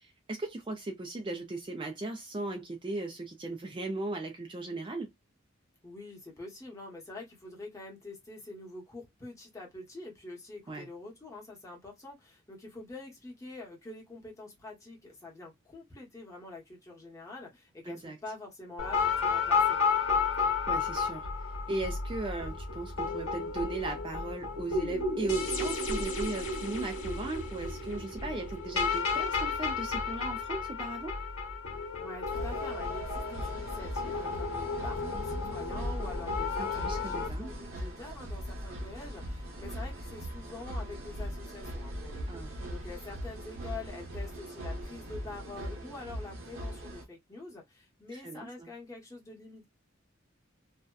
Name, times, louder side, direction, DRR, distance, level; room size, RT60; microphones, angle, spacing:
voice 1, 0.0-5.1 10.7-10.9 17.9-18.2 20.4-21.3 21.7-31.2 36.6-37.5 42.3-42.5 48.1-48.7, right 2 dB, 25° right, 0.4 m, -37 dB
voice 2, 5.8-19.8 32.0-49.7, left 2 dB, 15° left, 0.9 m, -46 dB
sound 1, 18.8-37.3, left 4 dB, 85° left, 1.0 m, -32 dB
sound 2, 32.3-47.1, equal, 80° right, 1.0 m, -40 dB
2.7 x 2.1 x 2.2 m
head